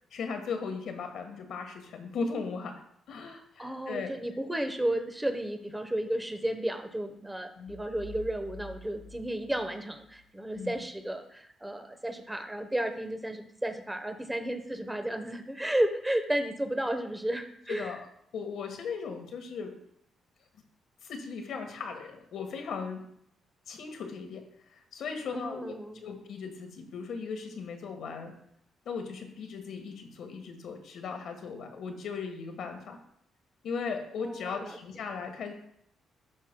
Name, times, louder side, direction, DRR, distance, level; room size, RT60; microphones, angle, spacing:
voice 1, 0.1-2.8 3.1-4.1 7.6-7.8 10.5-10.8 17.7-18.1 18.3-19.7 21.0-23.0 23.7-24.4 24.7-28.3 28.8-33.0 33.6-35.5, left 5 dB, 70° left, 4 dB, 1.3 m, -37 dB
voice 2, 3.3-18.0 25.3-26.1 34.2-34.8, right 1 dB, 10° right, 7 dB, 0.9 m, -33 dB
sound 1, 7.7-10.3, left 2 dB, 25° left, 1.0 m, -48 dB
12.0 x 5.5 x 2.2 m, 0.71 s
cardioid pair, 90°, 0 cm